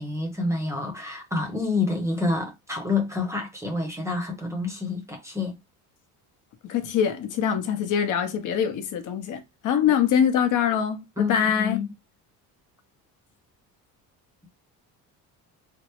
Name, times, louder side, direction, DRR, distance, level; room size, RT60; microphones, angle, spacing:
voice 1, 0.0-5.6 11.2-11.9, left 3 dB, 10° right, 0.7 m, -28 dB
voice 2, 6.6-11.8, left 8 dB, 55° left, 0.7 m, -24 dB
3.4 x 2.0 x 3.0 m
cardioid pair, 135°, 37 cm